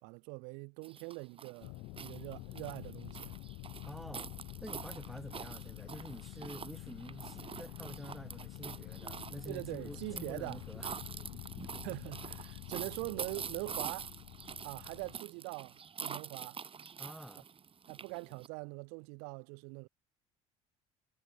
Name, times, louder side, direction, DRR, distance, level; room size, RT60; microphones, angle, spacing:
voice 1, 0.0-3.4 9.4-10.6 11.8-14.1 14.6-16.6 17.9-19.9, right 37 dB, 80° right, 3.2 m, -43 dB
sound 1, 0.8-18.5, right 6 dB, 35° right, 3.8 m, -46 dB
sound 2, 1.6-15.2, left 24 dB, 75° left, 2.5 m, -48 dB
voice 2, 3.9-4.3 4.6-10.9 17.0-17.5, equal, ahead, 1.3 m, -48 dB
supercardioid pair, 80°, 16 cm